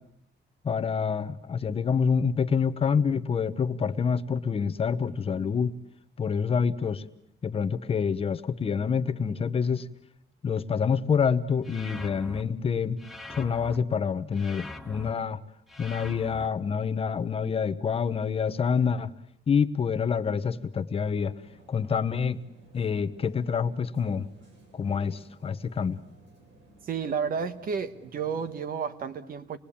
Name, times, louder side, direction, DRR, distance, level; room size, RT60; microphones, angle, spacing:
voice 1, 0.6-5.8 6.2-7.0 7.4-9.9 10.4-13.0 13.3-15.4 15.8-19.1 19.5-21.3 21.7-22.4 22.7-24.3 24.7-26.0, left 6 dB, 30° left, 9 dB, 1.0 m, -27 dB
sound 1, 11.6-12.4 13.0-13.8 14.3-15.1 15.7-16.5, left 2 dB, ahead, 1.0 m, -42 dB
sound 2, 21.1-28.6, right 2 dB, 80° right, 8.0 m, -56 dB
voice 2, 26.8-29.6, right 6 dB, 50° right, 11 dB, 1.5 m, -31 dB
27.5 x 21.0 x 8.7 m, 0.75 s
cardioid pair, 175°, 19 cm